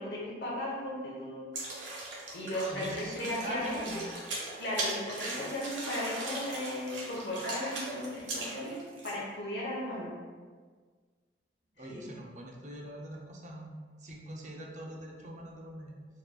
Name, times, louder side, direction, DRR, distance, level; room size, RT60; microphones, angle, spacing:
voice 1, 0.0-1.5 2.3-4.0 4.6-10.1 11.9-12.0, left 1 dB, 60° left, -6 dB, 0.9 m, -36 dB
sound 1, 1.5-9.1, right 2 dB, 90° right, 1.0 m, -39 dB
voice 2, 2.7-4.0 11.8-16.0, right 1 dB, 40° right, -1 dB, 0.5 m, -43 dB
4.5 x 2.8 x 2.3 m, 1.5 s
head